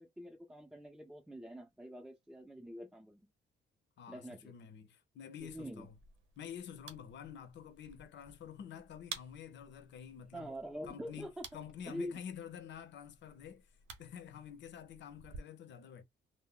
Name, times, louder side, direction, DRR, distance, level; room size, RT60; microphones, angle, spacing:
voice 1, 0.0-3.2 4.1-4.5 5.4-5.9 10.3-11.4 11.9-12.2, equal, 5° right, 0.6 m, -45 dB
voice 2, 4.0-5.9 6.4-10.5 10.8-11.3 11.5-13.7 14.0-16.0, left 8 dB, 65° left, 0.7 m, -49 dB
sound 1, 5.4-15.4, right 5 dB, 75° right, 0.8 m, -54 dB
2.1 x 2.1 x 3.7 m
cardioid pair, 90°, 20 cm